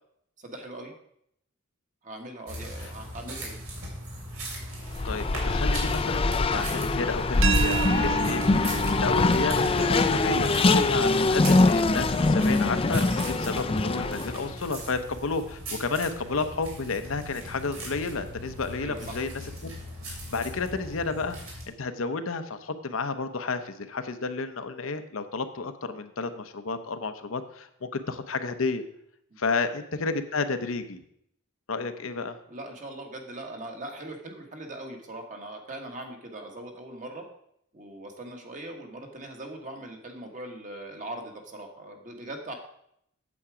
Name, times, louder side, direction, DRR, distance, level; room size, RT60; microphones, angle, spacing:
voice 1, 0.4-0.9 2.0-3.6 18.8-19.1 29.3-29.5 31.7-31.9 32.5-37.2 37.7-42.5, right 1 dB, 40° right, 3 dB, 1.6 m, -40 dB
sound 1, 2.5-21.6, right 1 dB, 80° right, 3.3 m, -39 dB
Race car auto racing, 4.9-14.5, left 3 dB, 25° left, 0.5 m, -23 dB
voice 2, 5.0-19.3 19.6-19.7 20.1-28.8 29.4-31.0 31.7-32.4, left 4 dB, 70° left, 8 dB, 0.8 m, -31 dB
sound 2, 7.4-13.2, right 7 dB, 65° right, 0.8 m, -34 dB
8.5 x 8.0 x 4.9 m, 0.73 s
head